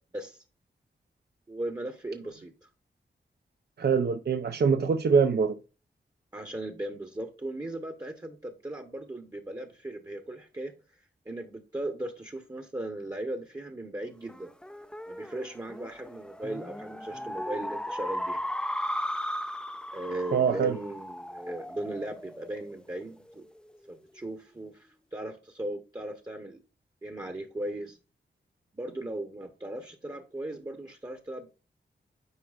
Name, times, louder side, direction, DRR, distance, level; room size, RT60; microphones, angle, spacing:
voice 1, 1.5-2.7 6.3-10.7 11.3-14.5 15.1-18.4 19.9-23.4 23.9-26.6 27.0-28.0 28.7-31.5, right 1 dB, 20° right, 0.9 m, -37 dB
voice 2, 3.8-5.6 20.3-20.8, right 6 dB, 60° right, 0.5 m, -24 dB
sound 1, 14.3-23.1, equal, 5° left, 0.4 m, -36 dB
9.6 x 4.7 x 2.4 m
cardioid pair, 65°, 19 cm